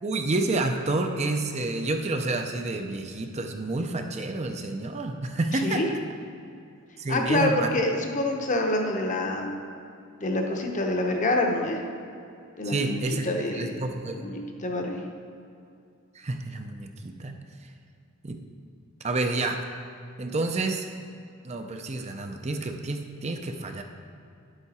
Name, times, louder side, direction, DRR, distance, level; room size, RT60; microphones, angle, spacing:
voice 1, 0.0-5.8 7.0-7.7 12.6-14.2 16.1-17.3 18.2-18.4 19.0-19.6 20.2-20.9 21.4-23.8, right 2 dB, 30° right, 5 dB, 0.5 m, -29 dB
voice 2, 7.1-9.5 10.2-11.8 12.6-13.0 13.2-13.8 14.1-15.0, left 2 dB, 35° left, 2 dB, 0.9 m, -26 dB
9.9 x 8.1 x 4.3 m, 2.5 s
head